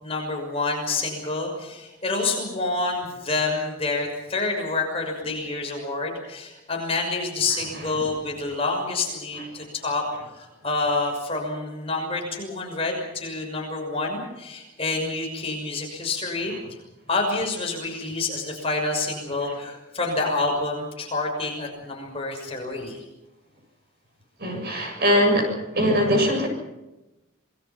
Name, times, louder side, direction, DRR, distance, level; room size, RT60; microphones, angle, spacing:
voice 1, 0.0-10.1 10.3-16.5 17.1-23.0, left 3 dB, 25° left, 1 dB, 6.1 m, -28 dB
voice 2, 24.4-26.5, equal, 50° right, 3 dB, 7.3 m, -21 dB
27.5 x 20.5 x 5.8 m, 1.0 s
head